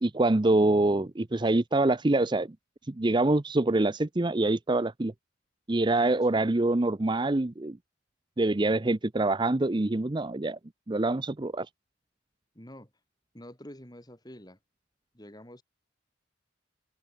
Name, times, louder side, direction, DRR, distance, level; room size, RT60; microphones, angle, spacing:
voice 1, 0.0-2.6 2.9-5.1 5.7-7.8 8.4-10.6 10.9-11.7, right 2 dB, 25° right, 0.6 m, -25 dB
voice 2, 12.5-12.9 13.3-14.6 15.1-15.6, equal, 20° left, 4.6 m, -47 dB
open air
head